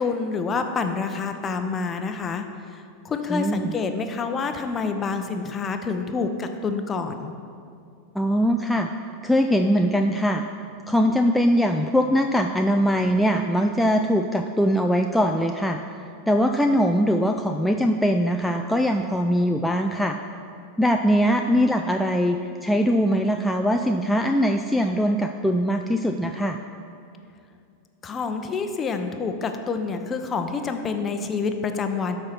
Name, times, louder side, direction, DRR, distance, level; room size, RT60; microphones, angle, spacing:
voice 1, 0.0-7.3 28.0-32.2, left 4 dB, 25° left, 6 dB, 0.8 m, -27 dB
voice 2, 3.3-3.7 8.1-8.9 9.2-10.4 10.9-15.8 16.3-20.2 20.8-26.6, equal, ahead, 3 dB, 0.4 m, -21 dB
12.0 x 4.4 x 6.0 m, 2.4 s
hypercardioid pair, 95°, 0 cm